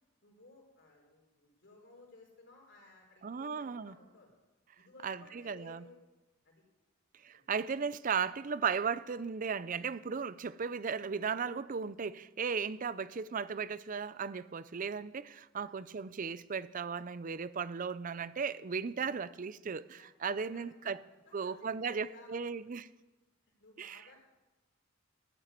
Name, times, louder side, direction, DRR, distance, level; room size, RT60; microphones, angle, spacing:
voice 1, 0.2-4.3 4.8-6.0 6.4-6.6 7.3-7.4 15.5-15.7 20.0-21.0 21.3-22.5 23.6-24.2, left 3 dB, 65° left, 4.5 m, -58 dB
voice 2, 3.2-3.9 5.0-5.8 7.2-21.0 21.3-22.9 23.8-24.0, right 6 dB, 45° right, 0.5 m, -36 dB
13.5 x 7.5 x 9.6 m
head